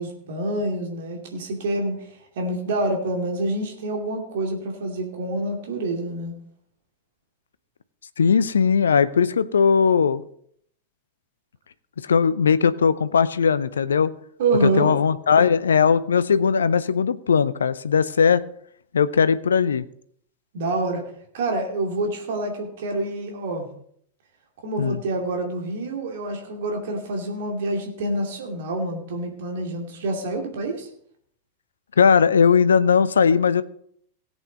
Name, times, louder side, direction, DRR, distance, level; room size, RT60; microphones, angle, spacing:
voice 1, 0.0-2.0 2.4-6.3 14.4-14.9 20.5-21.0 21.3-23.7 24.6-30.9, right 2 dB, 55° right, 2 dB, 2.5 m, -27 dB
voice 2, 8.2-10.2 12.0-14.1 14.6-18.4 18.9-19.9 24.8-25.0 32.0-33.6, left 6 dB, 70° left, 16 dB, 0.5 m, -19 dB
17.5 x 8.2 x 4.0 m, 0.65 s
figure-of-eight pair, 90°, 0 cm